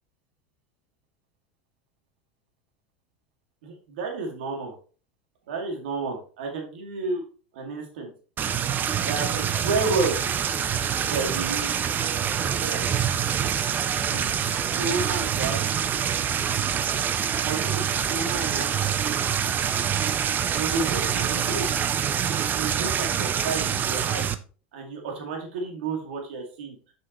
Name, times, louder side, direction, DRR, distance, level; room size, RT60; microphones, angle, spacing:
voice 1, 3.6-4.7 5.5-7.2 7.5-8.1 9.0-10.2 11.0-11.7 12.2-12.8 14.1-15.7 17.4-18.8 20.5-21.7 22.3-24.3 24.7-26.8, right 3 dB, 75° right, 2 dB, 2.1 m, -31 dB
sound 1, 8.4-24.3, right 8 dB, 30° right, 0.6 m, -26 dB
7.4 x 5.7 x 3.0 m, 0.39 s
hypercardioid pair, 100°, 6 cm